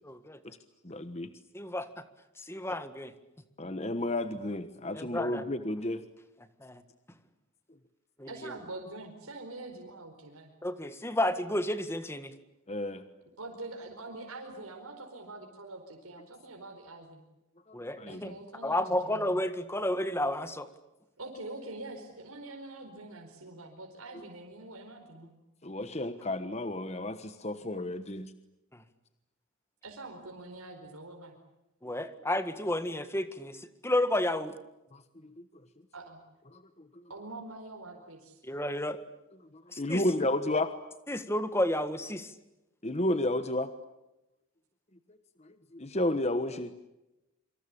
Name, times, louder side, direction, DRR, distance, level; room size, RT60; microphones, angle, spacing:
voice 1, 0.0-0.4 1.5-1.9 2.5-3.1 4.9-5.4 6.6-6.8 8.2-8.3 10.6-12.3 17.7-18.3 18.6-20.7 31.8-33.6 33.8-34.5 38.5-39.0 39.7-40.0 41.1-42.3, left 1 dB, 10° left, 11 dB, 1.7 m, -31 dB
voice 2, 0.8-1.3 2.7-2.8 3.6-6.0 12.7-13.0 17.7-18.4 25.6-28.3 32.0-32.1 34.9-35.4 36.5-37.1 39.5-40.7 42.8-43.7 45.1-46.7, left 1 dB, 30° left, 10 dB, 1.2 m, -32 dB
voice 3, 8.3-10.5 13.4-17.2 18.0-19.4 21.2-25.3 29.8-31.4 35.9-36.2 37.1-38.4 39.9-40.4, right 2 dB, 90° right, 2 dB, 4.7 m, -45 dB
26.5 x 25.5 x 8.6 m, 0.94 s
head